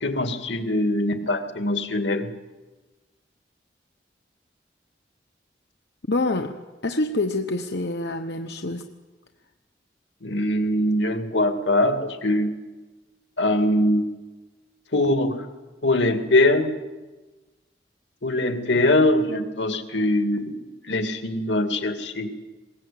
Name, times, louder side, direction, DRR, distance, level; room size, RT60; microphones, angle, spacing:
voice 1, 0.0-2.3 10.2-12.5 13.4-14.1 14.9-15.5 15.8-16.7 18.2-22.4, left 1 dB, 90° left, 7 dB, 2.3 m, -22 dB
voice 2, 6.1-8.9, left 2 dB, 70° left, 6 dB, 1.1 m, -26 dB
21.0 x 19.5 x 8.6 m, 1.2 s
head